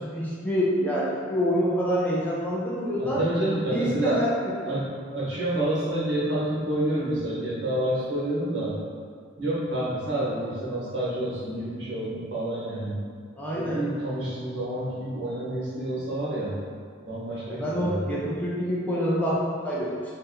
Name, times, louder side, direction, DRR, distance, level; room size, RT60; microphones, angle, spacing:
voice 1, 0.0-3.2 3.7-4.5 13.4-13.8 17.5-19.9, equal, 10° left, -7 dB, 0.6 m, -26 dB
voice 2, 3.0-4.2 4.6-8.7 9.4-13.0 13.5-16.6 17.1-18.1, right 1 dB, 60° right, -8 dB, 1.4 m, -28 dB
4.0 x 2.8 x 3.9 m, 2.2 s
head